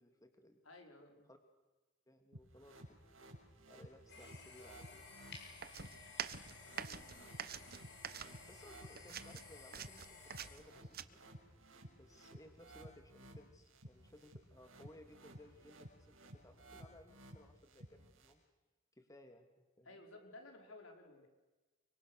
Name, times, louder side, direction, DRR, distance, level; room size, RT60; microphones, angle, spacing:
voice 1, 0.0-0.6 1.3-1.4 2.1-3.0 3.7-5.1 8.5-11.2 11.9-16.2 16.4-18.4 18.9-20.0, left 1 dB, 15° left, 5 dB, 2.4 m, -61 dB
voice 2, 0.6-1.3 6.7-7.8 8.1-8.2 19.8-21.3, left 2 dB, 80° left, 3 dB, 5.5 m, -57 dB
sound 1, 2.3-18.3, right 1 dB, 90° right, 6.8 m, -57 dB
sound 2, 4.1-10.6, left 4 dB, 60° left, 6.4 m, -56 dB
sound 3, 5.6-8.7 9.0-11.0, right 8 dB, 50° right, 1.2 m, -46 dB
29.5 x 25.0 x 6.7 m, 1.2 s
head